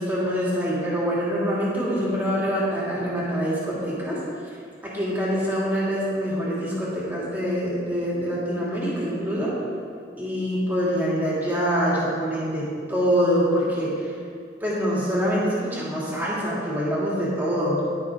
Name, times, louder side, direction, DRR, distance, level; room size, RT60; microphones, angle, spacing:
voice 1, 0.0-4.2 4.8-9.5 10.2-14.1 14.6-17.8, equal, 10° right, -7 dB, 2.5 m, -25 dB
18.5 x 6.3 x 3.6 m, 2.2 s
head